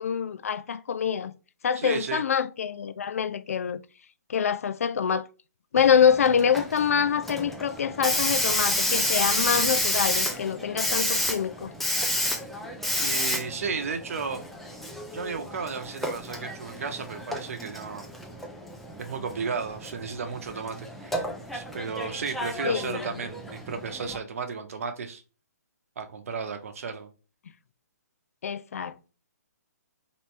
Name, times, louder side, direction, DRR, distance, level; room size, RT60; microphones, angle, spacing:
voice 1, 0.0-1.3 1.6-3.8 4.3-5.3 5.7-11.7 22.6-23.2 28.4-29.1, left 7 dB, 55° left, 0.4 m, -25 dB
voice 2, 1.7-2.2 13.0-14.4 15.1-18.1 19.0-21.2 21.5-25.2 26.0-27.1, right 5 dB, 55° right, 0.9 m, -34 dB
Hiss, 5.8-24.2, left 1 dB, ahead, 0.5 m, -31 dB
3.1 x 3.0 x 4.2 m
figure-of-eight pair, 130°, 9 cm